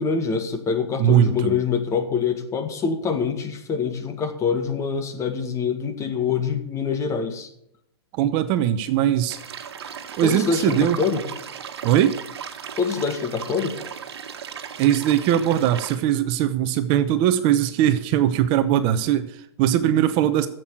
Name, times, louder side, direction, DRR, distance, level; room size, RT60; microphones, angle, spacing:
voice 1, 0.0-7.5 10.2-11.2 12.8-13.8, left 6 dB, 20° left, 7 dB, 1.8 m, -25 dB
voice 2, 1.0-1.6 8.1-9.4 10.2-11.0 11.8-12.2 14.8-20.5, right 11 dB, 40° right, 11 dB, 0.9 m, -20 dB
sound 1, 9.3-16.0, right 7 dB, 65° right, 1.6 m, -36 dB
11.0 x 7.7 x 8.8 m, 0.75 s
hypercardioid pair, 120°, 14 cm